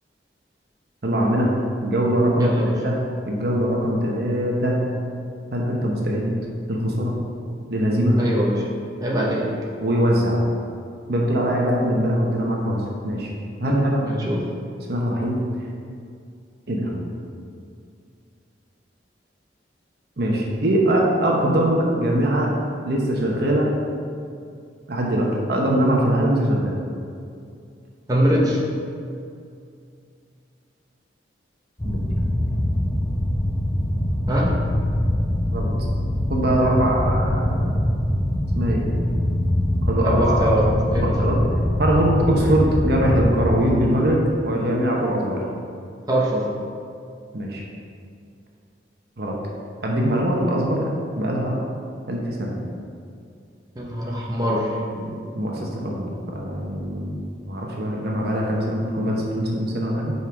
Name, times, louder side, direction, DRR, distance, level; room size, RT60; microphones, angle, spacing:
voice 1, 1.0-1.5 1.8-2.5 2.8-3.0 3.2-4.8 5.5-6.3 6.7-7.1 7.7-8.2 9.1-9.3 9.8-10.4 11.1-13.3 13.6-14.1 14.9-15.4 16.7-16.9 20.2-22.5 22.8-23.7 24.9-26.8 31.8-32.0 35.5-35.7 36.3-37.8 38.5-38.8 39.9-40.5 40.9-41.4 41.8-45.4 47.3-47.6 49.2-49.4 49.8-50.9 51.2-51.6 52.1-52.6 55.0-56.1 56.3-57.2 57.5-60.1, right 1 dB, 60° right, -2 dB, 0.9 m, -22 dB
voice 2, 2.4-2.7 8.2-8.6 9.0-9.5 13.6-14.4 28.1-28.6 34.3-34.5 40.0-40.6 40.9-41.1 46.1-46.5 53.7-54.8, equal, 20° right, -4 dB, 1.0 m, -22 dB
sound 1, 31.8-43.6, left 1 dB, 15° left, 0.6 m, -23 dB
5.4 x 5.3 x 4.7 m, 2.4 s
head